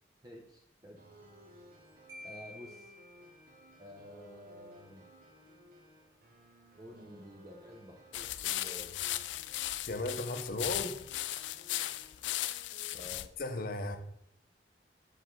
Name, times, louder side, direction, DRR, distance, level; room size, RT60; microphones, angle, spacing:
voice 1, 0.2-1.0 1.5-1.7 2.2-2.9 3.8-5.1 6.8-9.0 12.9-13.3, equal, 20° right, 0.7 m, -51 dB
sound 1, 1.0-12.9, right 1 dB, 50° right, 1.0 m, -58 dB
Marimba xylophone, 2.1-3.8, left 1 dB, 90° right, 1.5 m, -51 dB
sound 2, 8.1-13.3, left 14 dB, 75° left, 0.3 m, -37 dB
voice 2, 9.9-11.0 13.4-14.0, left 2 dB, 50° left, 0.7 m, -35 dB
6.6 x 4.9 x 3.7 m
head